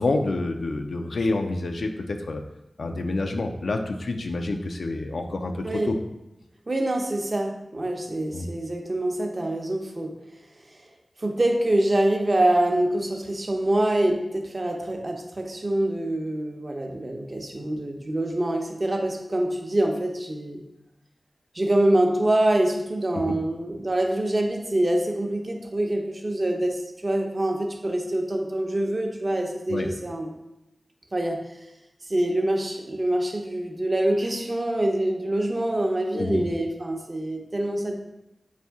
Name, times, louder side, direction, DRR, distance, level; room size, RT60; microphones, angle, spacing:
voice 1, 0.0-2.4 2.8-6.0 8.3-8.5 23.1-23.3 29.7-29.9 36.1-36.4, left 2 dB, 85° left, 4 dB, 0.3 m, -28 dB
voice 2, 6.7-10.2 10.7-10.8 11.2-20.6 21.5-30.3 31.1-31.4 32.0-37.9, right 1 dB, 45° right, 2 dB, 0.6 m, -25 dB
4.1 x 2.6 x 3.5 m, 0.92 s
wide cardioid pair, 55°, 0 cm